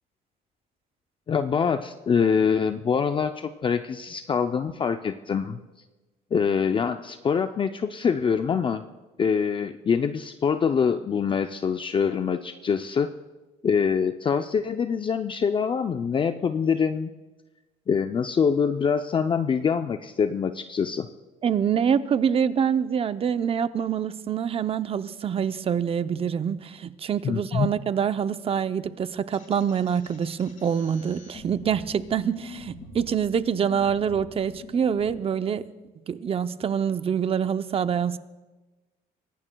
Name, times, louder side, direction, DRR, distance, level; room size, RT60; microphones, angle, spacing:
voice 1, 1.3-5.6 6.3-8.8 9.2-13.1 13.6-17.1 17.9-21.1 27.2-27.7, left 6 dB, 30° left, 8 dB, 0.5 m, -24 dB
voice 2, 21.4-35.6 36.1-38.2, right 7 dB, 35° right, 12 dB, 0.6 m, -25 dB
sound 1, 29.3-35.1, left 4 dB, 55° left, 5.0 m, -45 dB
23.5 x 17.5 x 2.3 m, 1.2 s
cardioid pair, 110°, 17 cm